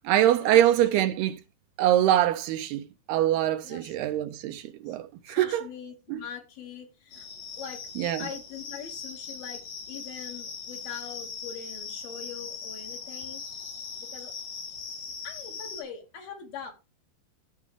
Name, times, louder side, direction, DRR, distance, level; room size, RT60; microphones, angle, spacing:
voice 1, 0.1-1.4 1.8-5.6 6.1-6.2 8.0-8.3, right 12 dB, 80° right, 2.6 m, -24 dB
voice 2, 3.6-3.9 4.9-5.0 5.3-7.3 7.6-7.8 8.2-9.6 9.9-13.4 14.0-14.3 15.2-16.7, left 7 dB, 60° left, 4.2 m, -42 dB
sound 1, 7.1-15.8, left 5 dB, 90° left, 5.6 m, -40 dB
15.0 x 7.4 x 3.5 m
omnidirectional pair, 4.9 m